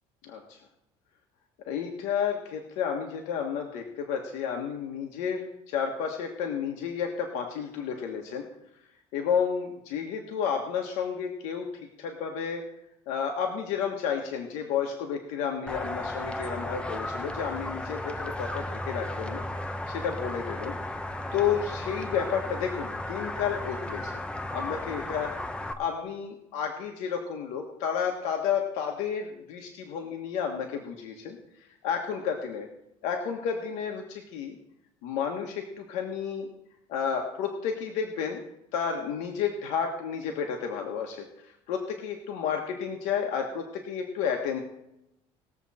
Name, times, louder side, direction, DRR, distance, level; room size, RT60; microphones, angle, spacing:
voice 1, 0.2-0.6 1.7-8.5 9.1-11.7 12.0-12.6 13.1-19.4 19.9-20.8 21.3-24.2 24.5-25.3 25.8-32.7 33.0-34.6 35.0-36.5 36.9-38.4 38.7-44.6, left 7 dB, 90° left, 2 dB, 1.5 m, -31 dB
sound 1, 15.7-25.7, left 1 dB, 10° left, 0.9 m, -35 dB
20.0 x 7.5 x 4.3 m, 0.86 s
cardioid pair, 150°, 12 cm